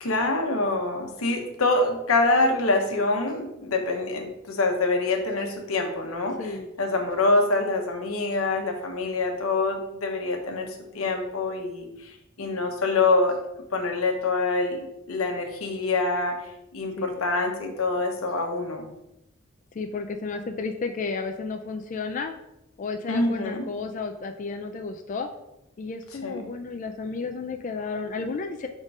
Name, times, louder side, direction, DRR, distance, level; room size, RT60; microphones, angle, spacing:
voice 1, 0.0-13.4 13.7-18.9 23.1-23.7 26.2-26.4, left 3 dB, 90° left, 3 dB, 1.0 m, -25 dB
voice 2, 6.4-6.7 17.0-17.2 19.7-22.3 22.8-25.3 25.8-28.7, left 4 dB, 40° left, 5 dB, 0.3 m, -32 dB
4.8 x 3.7 x 5.3 m, 0.90 s
head